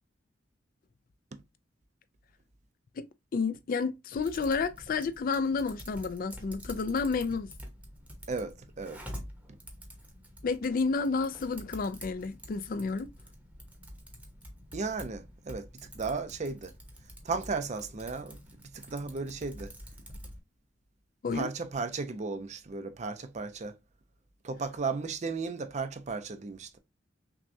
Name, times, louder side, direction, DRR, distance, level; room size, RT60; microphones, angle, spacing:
voice 1, 3.3-7.5 10.4-13.1 21.2-21.5, left 4 dB, 45° left, 0.4 m, -30 dB
Typing, 4.2-20.4, equal, 5° right, 0.9 m, -48 dB
voice 2, 8.3-9.0 14.7-16.7 17.2-18.4 18.7-19.7 21.3-23.8 24.4-26.8, right 4 dB, 35° right, 0.5 m, -35 dB
6.0 x 2.3 x 2.6 m
head